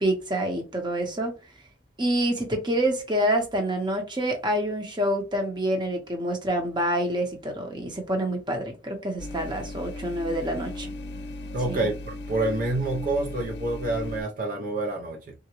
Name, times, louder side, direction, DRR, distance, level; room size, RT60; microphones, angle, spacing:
voice 1, 0.0-1.3 2.0-10.9 11.7-11.8, right 1 dB, 25° right, 0.8 m, -27 dB
sound 1, 9.2-14.2, left 2 dB, 70° left, 0.5 m, -37 dB
voice 2, 11.5-15.3, right 2 dB, 50° right, 0.5 m, -28 dB
3.7 x 2.1 x 2.9 m
head